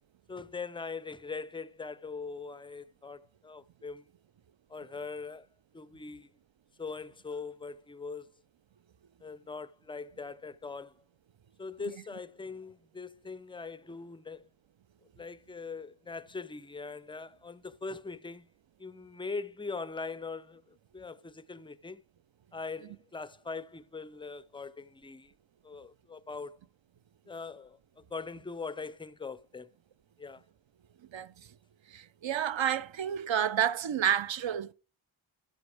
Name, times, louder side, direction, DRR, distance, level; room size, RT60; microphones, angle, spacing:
voice 1, 0.3-4.1 4.7-5.5 5.7-6.3 6.8-8.3 9.2-10.9 11.6-14.5 15.2-18.5 18.8-22.0 22.5-25.3 25.6-26.6 27.3-29.7 30.2-30.4, left 4 dB, 10° left, 0.3 m, -41 dB
voice 2, 31.1-31.5 31.9-34.7, right 9 dB, 65° right, 0.5 m, -30 dB
13.0 x 5.3 x 3.3 m
wide cardioid pair, 40°, 49 cm